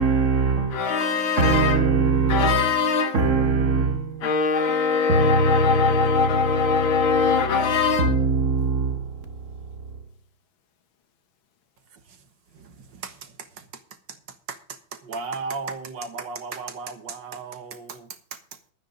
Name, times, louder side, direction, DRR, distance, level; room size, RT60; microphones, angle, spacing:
voice 1, 0.0-0.8 1.4-2.7 3.1-4.3 5.1-6.3 6.7-7.0 8.0-10.0, right 4 dB, 40° right, 1.8 m, -22 dB
voice 2, 0.7-3.4 4.2-8.3, left 5 dB, 80° left, 2.1 m, -22 dB
voice 3, 11.9-18.6, right 4 dB, 65° right, 2.1 m, -37 dB
12.5 x 9.3 x 5.2 m
omnidirectional pair, 2.2 m